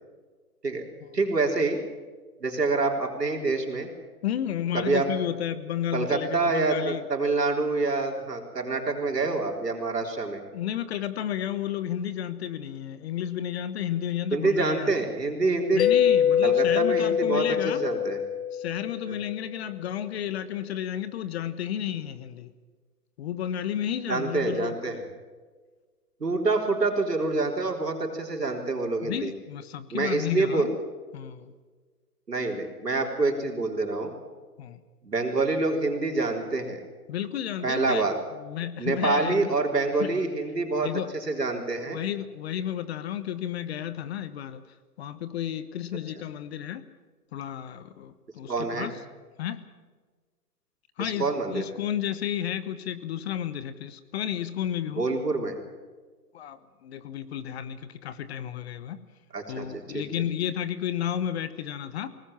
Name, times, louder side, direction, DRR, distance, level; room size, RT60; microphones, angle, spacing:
voice 1, 1.1-1.8 2.4-3.9 4.7-5.1 5.9-10.4 14.3-15.8 16.4-18.2 19.1-19.2 24.1-25.1 26.2-29.3 29.9-30.7 32.3-34.1 35.0-36.8 37.6-38.2 38.8-42.0 48.5-48.9 51.0-51.6 55.0-55.6 59.3-60.0, right 3 dB, 90° right, 3 dB, 4.0 m, -26 dB
voice 2, 4.2-7.0 10.5-15.0 15.7-17.8 18.5-22.5 23.2-25.0 29.0-30.8 31.1-31.5 34.6-34.8 37.1-38.1 38.4-39.5 40.0-40.1 40.8-41.1 41.9-44.6 45.0-46.8 47.3-48.9 49.4-49.6 51.0-55.1 56.3-59.0 59.5-62.1, left 10 dB, 40° left, 13 dB, 1.3 m, -32 dB
Mallet percussion, 15.8-19.3, left 9 dB, 60° left, 0.9 m, -24 dB
22.5 x 19.0 x 7.4 m, 1.4 s
figure-of-eight pair, 130°, 47 cm